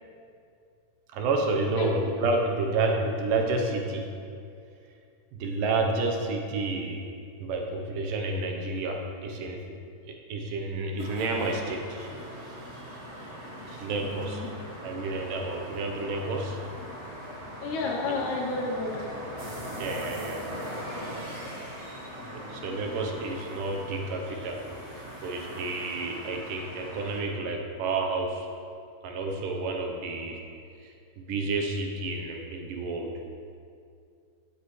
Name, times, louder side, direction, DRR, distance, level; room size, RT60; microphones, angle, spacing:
voice 1, 1.1-4.1 5.3-7.0 7.4-9.6 10.0-12.8 13.6-14.4 14.8-16.6 18.1-18.2 19.8-20.4 22.5-24.7 24.9-28.5 29.0-30.4 30.8-33.1, right 3 dB, 85° right, 2 dB, 2.7 m, -30 dB
sound 1, 11.0-27.2, equal, 55° right, 0.7 m, -40 dB
voice 2, 14.0-15.5 17.6-19.2, left 3 dB, 70° left, 0 dB, 2.3 m, -33 dB
15.5 x 7.9 x 3.2 m, 2.4 s
omnidirectional pair, 3.8 m